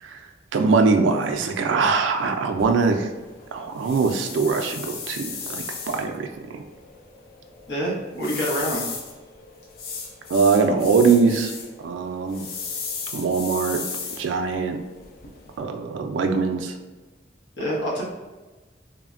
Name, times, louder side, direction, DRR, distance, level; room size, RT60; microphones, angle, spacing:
voice 1, 0.5-3.1 3.5-6.3 6.5-6.6 10.3-11.5 11.8-12.5 13.1-13.8 14.2-14.8 15.6-16.7, right 4 dB, 90° right, 5 dB, 0.3 m, -22 dB
sound 1, 2.6-15.6, left 5 dB, 50° left, 0.4 m, -36 dB
voice 2, 7.7-8.9 17.6-18.0, equal, 80° left, -5 dB, 0.9 m, -26 dB
3.2 x 2.1 x 2.4 m, 1.2 s
head